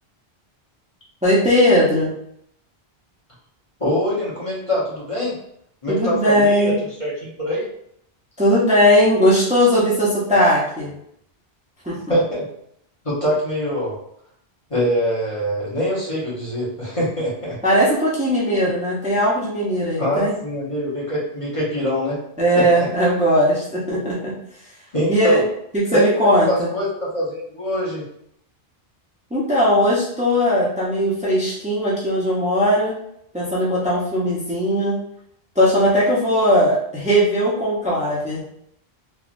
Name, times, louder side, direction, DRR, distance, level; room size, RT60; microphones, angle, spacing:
voice 1, 1.2-2.1 5.9-6.8 8.4-10.9 11.8-12.0 17.6-20.3 22.4-24.3 25.1-25.4 25.7-26.7 29.3-32.9 33.3-35.0 35.6-38.4, equal, 10° right, -7 dB, 0.6 m, -18 dB
voice 2, 3.8-5.4 5.8-7.7 12.1-12.5 13.0-14.0 14.7-17.6 20.0-22.2 22.5-22.9 24.9-25.4 25.9-28.1, equal, 35° left, -7 dB, 1.0 m, -23 dB
3.2 x 2.4 x 2.5 m, 0.72 s
omnidirectional pair, 1.1 m